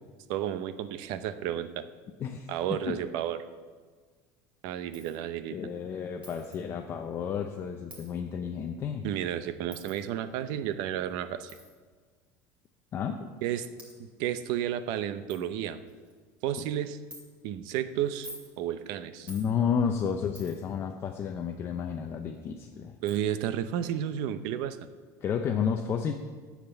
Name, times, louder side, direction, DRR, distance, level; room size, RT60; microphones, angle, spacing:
voice 1, 0.3-1.8 2.5-3.4 4.6-5.6 9.0-11.5 13.4-13.7 14.0-15.8 16.4-17.0 17.4-18.3 18.6-19.3 23.0-24.8, right 10 dB, 65° right, 12 dB, 0.7 m, -32 dB
voice 2, 2.2-3.0 5.5-9.0 12.9-13.3 19.3-22.9 25.2-26.1, left 7 dB, 30° left, 4 dB, 0.6 m, -31 dB
Coin (dropping), 4.9-5.2 6.2-6.6 7.9-8.1 9.7-10.0 11.5-11.7 12.6-12.7 13.4-13.5 13.8-13.9 14.6-14.7 14.9-15.0 15.3-15.4 15.9-16.2 17.1-17.2 18.1-18.5 19.3-19.5 20.3-20.7 22.3-22.4 23.1-23.2, equal, 15° right, 2.4 m, -48 dB
10.5 x 7.4 x 6.9 m, 1.5 s
cardioid pair, 155°, 8 cm